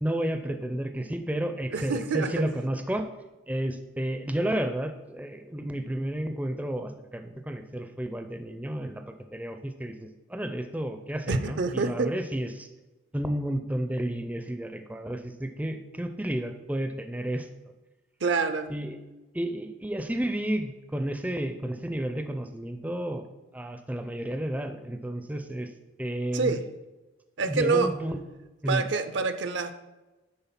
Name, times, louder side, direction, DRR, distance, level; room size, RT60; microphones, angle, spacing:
voice 1, 0.0-3.1 3.5-12.7 13.1-17.5 18.7-19.0 19.3-23.3 23.5-25.7 26.0-26.5 27.4-28.2 28.6-28.8, right 1 dB, 5° right, 7 dB, 0.4 m, -31 dB
voice 2, 1.7-2.5 11.3-12.2 18.2-18.7 26.3-26.6 27.4-27.9 28.7-29.7, right 4 dB, 65° right, 10 dB, 0.5 m, -27 dB
9.7 x 3.7 x 5.8 m, 1.1 s
head